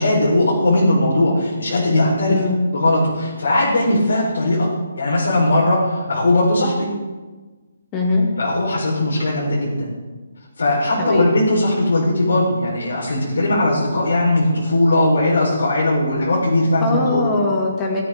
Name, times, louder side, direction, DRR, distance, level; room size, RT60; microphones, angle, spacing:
voice 1, 0.0-2.4 2.7-4.7 5.0-6.9 8.4-9.9 10.6-17.3, left 1 dB, 85° left, -4 dB, 4.3 m, -18 dB
voice 2, 7.9-8.2 11.0-11.3 16.8-18.0, left 3 dB, 15° left, -1 dB, 2.4 m, -21 dB
17.5 x 11.0 x 3.7 m, 1.3 s
hypercardioid pair, 170°, 0 cm